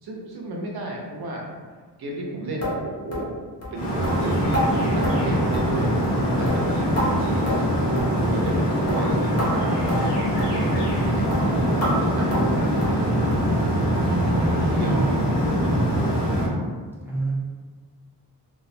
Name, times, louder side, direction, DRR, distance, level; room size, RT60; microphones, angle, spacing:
voice 1, 0.0-1.5 2.0-3.3 3.7-6.0 6.4-9.8 10.4-13.4 14.4-16.2, right 1 dB, 65° right, -2 dB, 0.6 m, -34 dB
sound 1, 2.6-2.8 3.1-3.3 3.6-3.7 4.0-4.2 4.5-4.7 5.0-5.2 5.5-5.8 6.0-6.2 6.5-7.1 7.5-7.7 8.0-8.1 8.5-8.6 8.9-9.0 9.4-9.5 9.9-10.0 10.4-10.5 10.9-11.0 11.3-11.4 11.8-11.9 12.3-12.5 12.8-13.0 13.3-13.5 13.8-13.9 14.3-14.4 14.8-14.9, left 1 dB, 40° left, 0.6 m, -29 dB
sound 2, 3.7-16.5, equal, 80° left, 0.9 m, -23 dB
voice 2, 14.0-15.0 17.0-17.3, right 1 dB, 5° right, -7 dB, 0.4 m, -28 dB
2.3 x 2.1 x 2.6 m, 1.5 s
wide cardioid pair, 170°, 41 cm